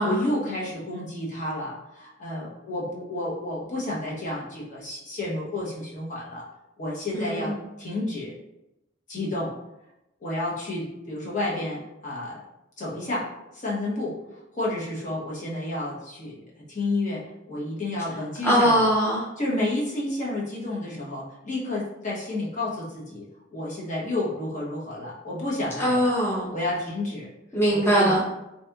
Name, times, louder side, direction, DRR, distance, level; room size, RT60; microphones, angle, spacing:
voice 1, 0.0-6.4 6.8-7.5 7.8-8.3 9.1-9.5 10.2-12.4 12.8-13.2 13.5-14.1 14.5-16.4 16.7-17.2 17.5-18.8 19.4-23.2 23.5-26.1 26.5-27.3 27.8-28.2, left 1 dB, 40° left, -5 dB, 0.9 m, -30 dB
voice 2, 7.1-7.6 18.4-19.2 25.8-26.5 27.5-28.2, equal, 10° left, -7 dB, 0.6 m, -21 dB
4.0 x 2.8 x 2.3 m, 0.91 s
head